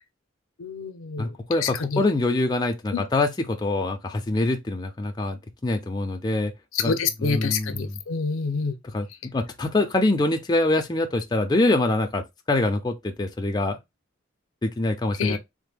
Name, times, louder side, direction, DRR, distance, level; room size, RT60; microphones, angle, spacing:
voice 1, 0.6-2.0 2.9-3.0 6.7-8.8 15.2-15.4, left 5 dB, 85° left, 0.5 m, -27 dB
voice 2, 1.2-6.5 6.8-8.0 8.9-13.8 14.6-15.4, left 2 dB, 20° left, 0.4 m, -25 dB
3.3 x 2.1 x 3.3 m
head